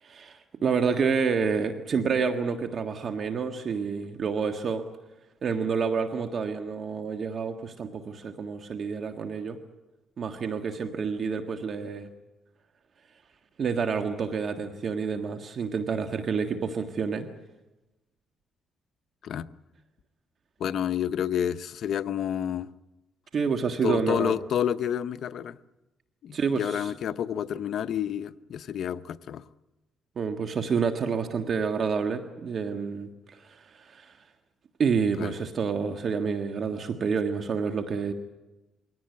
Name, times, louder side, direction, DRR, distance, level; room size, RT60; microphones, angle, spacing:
voice 1, 0.0-4.8 5.4-9.6 10.2-12.1 13.6-17.3 23.3-24.3 26.3-26.9 30.1-34.2 34.8-38.1, right 5 dB, 50° right, 6 dB, 1.7 m, -28 dB
voice 2, 20.6-22.7 23.8-25.6 26.2-29.4 35.2-35.3, left 9 dB, 65° left, 12 dB, 0.8 m, -29 dB
23.0 x 17.5 x 9.7 m, 1.1 s
cardioid pair, 90°, 0 cm